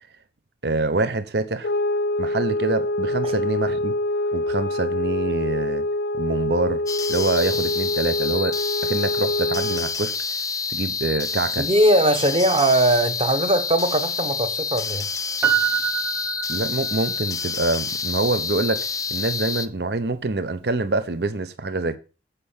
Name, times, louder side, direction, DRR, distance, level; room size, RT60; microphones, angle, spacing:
voice 1, 0.6-1.7 2.2-3.9 4.3-5.8 6.2-6.8 7.1-10.1 10.7-11.7 16.5-22.0, right 2 dB, 65° right, 0.9 m, -25 dB
sound 1, 1.6-10.0, left 1 dB, 60° left, 0.6 m, -25 dB
sound 2, 6.9-19.7, left 5 dB, 20° left, 0.6 m, -28 dB
voice 2, 11.6-15.0, right 1 dB, 35° right, 1.3 m, -20 dB
Piano, 15.4-17.2 17.5-17.6, right 10 dB, 15° right, 1.3 m, -25 dB
8.5 x 5.7 x 7.2 m
head